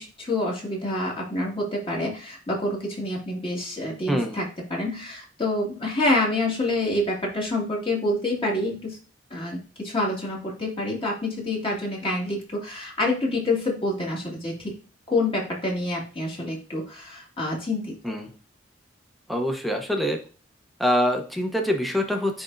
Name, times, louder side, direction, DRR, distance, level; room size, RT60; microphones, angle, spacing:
voice 1, 0.0-9.0 9.3-14.8 15.1-18.1, left 2 dB, 30° left, -3 dB, 2.1 m, -27 dB
voice 2, 4.1-4.4 18.0-18.3 19.3-20.2 20.8-22.4, equal, ahead, 3 dB, 0.9 m, -25 dB
10.0 x 3.5 x 2.6 m, 0.39 s
head